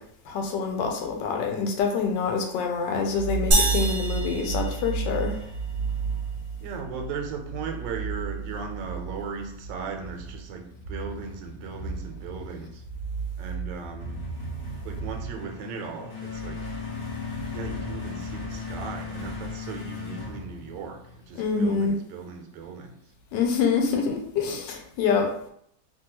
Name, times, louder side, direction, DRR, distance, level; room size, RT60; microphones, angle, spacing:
voice 1, 0.3-5.3 21.3-22.0 23.3-25.3, left 5 dB, 90° left, 3 dB, 1.3 m, -26 dB
sound 1, 3.1-21.2, right 3 dB, 65° left, 1.1 m, -34 dB
sound 2, 3.5-5.4, right 1 dB, 50° right, 0.7 m, -26 dB
voice 2, 6.6-12.8 13.4-14.3 14.8-16.7 17.5-23.1, right 5 dB, 90° right, 4 dB, 1.3 m, -37 dB
3.1 x 2.2 x 2.8 m, 0.69 s
omnidirectional pair, 1.9 m